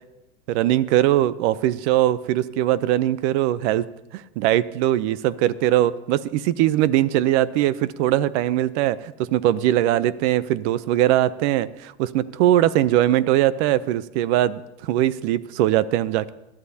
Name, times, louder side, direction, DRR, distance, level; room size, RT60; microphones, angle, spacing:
voice 1, 0.5-16.3, right 13 dB, 75° right, 17 dB, 0.7 m, -21 dB
21.0 x 12.0 x 2.8 m, 0.97 s
supercardioid pair, 100°, 35 cm